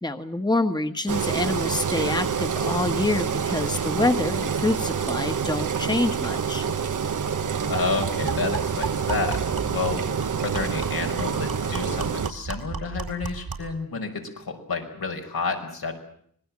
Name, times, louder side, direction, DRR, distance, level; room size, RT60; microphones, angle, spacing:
voice 1, 0.0-6.7, left 2 dB, 10° left, 7 dB, 1.5 m, -26 dB
Engine, 1.1-12.3, right 6 dB, 60° right, 1.0 m, -27 dB
sound 1, 6.8-6.9 7.2-7.4 7.7-13.8, right 5 dB, 85° right, 4.1 m, -35 dB
voice 2, 7.7-10.1 10.4-15.9, left 4 dB, 85° left, 2 dB, 5.4 m, -30 dB
25.5 x 20.5 x 7.5 m, 0.64 s
wide cardioid pair, 70°, 35 cm